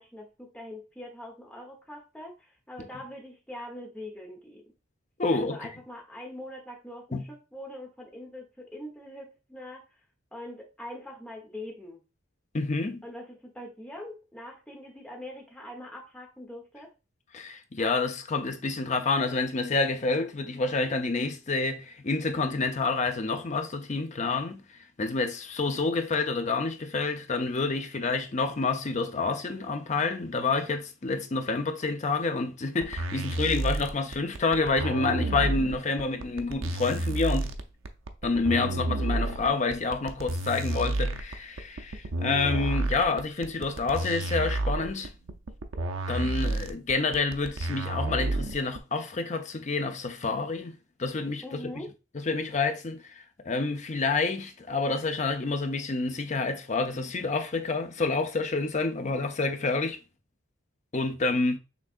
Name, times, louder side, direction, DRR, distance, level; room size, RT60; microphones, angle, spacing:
voice 1, 0.0-4.6 5.3-9.8 10.3-12.0 13.0-16.9 51.4-51.9, left 1 dB, 5° left, 1.0 m, -43 dB
voice 2, 5.2-5.7 7.1-7.3 12.5-13.0 17.3-24.6 25.0-37.5 38.2-45.1 46.1-51.4 52.1-60.0 60.9-61.6, left 3 dB, 35° left, 0.6 m, -28 dB
sound 1, 32.8-48.8, right 2 dB, 75° right, 0.6 m, -30 dB
6.0 x 3.4 x 2.5 m
head